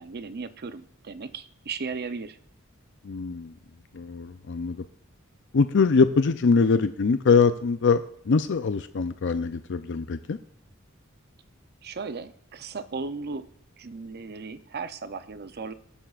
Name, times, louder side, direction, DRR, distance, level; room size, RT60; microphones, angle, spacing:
voice 1, 0.0-2.4 11.8-13.5 13.8-15.7, right 4 dB, 50° right, 11 dB, 0.6 m, -36 dB
voice 2, 3.1-3.5 3.9-4.8 5.5-8.0 8.3-10.4, left 4 dB, 60° left, 10 dB, 0.5 m, -23 dB
19.5 x 11.5 x 2.5 m, 0.65 s
head